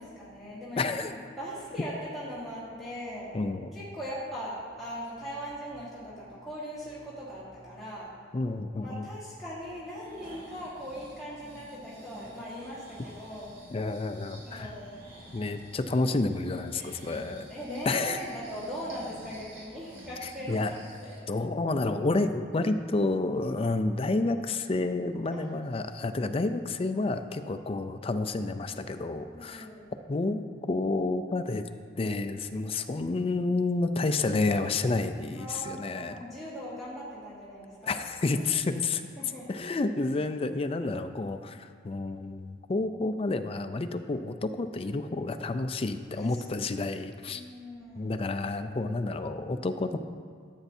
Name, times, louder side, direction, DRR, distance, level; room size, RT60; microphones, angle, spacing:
voice 1, 0.0-3.4 3.7-8.2 8.8-13.6 14.4-15.0 16.7-17.0 17.5-21.2 23.6-23.7 25.3-25.5 29.3-29.9 35.3-38.3 39.2-39.6 46.2-46.4 47.3-48.1, equal, ahead, -10 dB, 1.5 m, -40 dB
voice 2, 0.8-1.1 3.3-3.7 8.3-9.1 13.7-14.7 15.3-17.5 17.9-18.2 20.2-20.7 21.3-29.7 30.1-31.6 32.0-36.2 37.9-39.0 39.5-47.4 48.0-50.0, left 3 dB, 30° left, 9 dB, 0.4 m, -30 dB
Breathing, 9.9-21.3 21.7-21.8, equal, 75° right, 2.7 m, -50 dB
14.0 x 8.1 x 2.7 m, 2.1 s
head